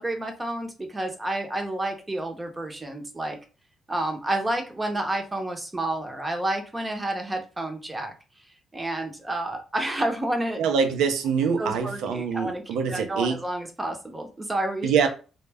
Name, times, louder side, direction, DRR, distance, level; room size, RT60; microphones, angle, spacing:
voice 1, 0.0-3.4 3.9-8.1 8.7-10.6 11.6-12.6 12.9-14.9, right 1 dB, 20° right, 0.7 m, -30 dB
voice 2, 10.6-13.4 14.8-15.1, right 6 dB, 85° right, 0.5 m, -24 dB
2.2 x 2.1 x 3.3 m
cardioid pair, 90°, 0 cm